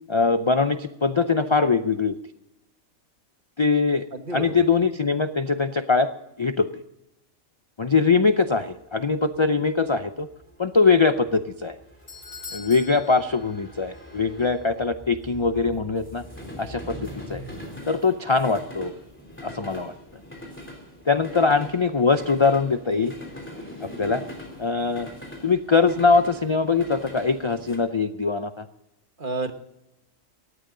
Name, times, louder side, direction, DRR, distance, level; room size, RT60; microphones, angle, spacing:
voice 1, 0.1-2.2 3.6-4.1 4.3-6.1 6.4-6.7 7.8-10.3 10.6-11.8 12.5-16.2 16.6-17.4 17.9-18.9 19.4-19.9 21.1-23.1 23.8-24.2 24.6-25.1 25.4-28.7, left 4 dB, 40° left, 10 dB, 0.4 m, -22 dB
voice 2, 4.1-4.6 29.2-29.5, right 3 dB, 40° right, 7 dB, 1.5 m, -30 dB
sound 1, 8.3-27.8, equal, 10° left, 3.3 m, -42 dB
Doorbell, 11.6-14.1 14.4-14.5 15.2-15.3, left 5 dB, 75° left, 3.2 m, -43 dB
19.0 x 14.5 x 3.8 m, 0.88 s
omnidirectional pair, 1.3 m